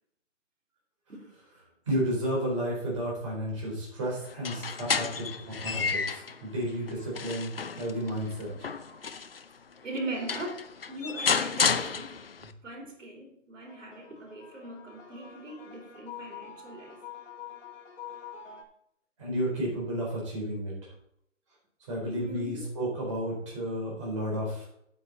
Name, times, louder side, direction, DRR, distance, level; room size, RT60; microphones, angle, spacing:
voice 1, 1.9-4.6 5.0-5.1 5.6-8.5 19.2-20.7 21.9-24.7, equal, 25° right, -4 dB, 4.0 m, -32 dB
sound 1, 4.3-6.4 6.9-9.4 10.0-10.1 10.3-12.5, left 5 dB, 50° left, 0.6 m, -31 dB
voice 2, 9.8-10.6 10.9-12.2 12.6-17.0 22.1-22.7, right 2 dB, 75° right, 0 dB, 4.5 m, -40 dB
sound 2, 13.6-18.6, left 8 dB, 75° left, 2.6 m, -46 dB
8.9 x 8.6 x 4.1 m, 0.73 s
hypercardioid pair, 180°, 38 cm